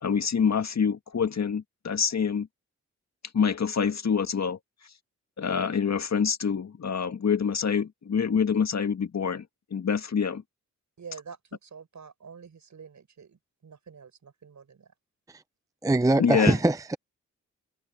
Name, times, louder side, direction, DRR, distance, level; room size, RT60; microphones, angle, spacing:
voice 1, 0.0-2.5 3.3-4.6 5.4-9.4 9.7-10.4 16.2-16.6, left 6 dB, 55° left, 1.9 m, -26 dB
voice 2, 11.0-14.9, right 6 dB, 65° right, 7.0 m, -47 dB
voice 3, 15.8-17.0, right 2 dB, 10° right, 0.6 m, -23 dB
cardioid pair, 50°, 32 cm